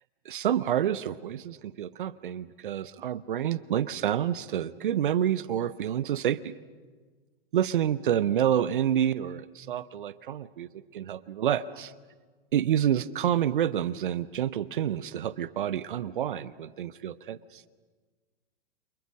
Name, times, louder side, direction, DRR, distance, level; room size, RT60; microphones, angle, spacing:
voice 1, 0.2-6.5 7.5-11.9 12.5-17.6, right 10 dB, 55° right, 17 dB, 0.9 m, -28 dB
29.5 x 27.5 x 6.3 m, 1.4 s
figure-of-eight pair, 100°, 30 cm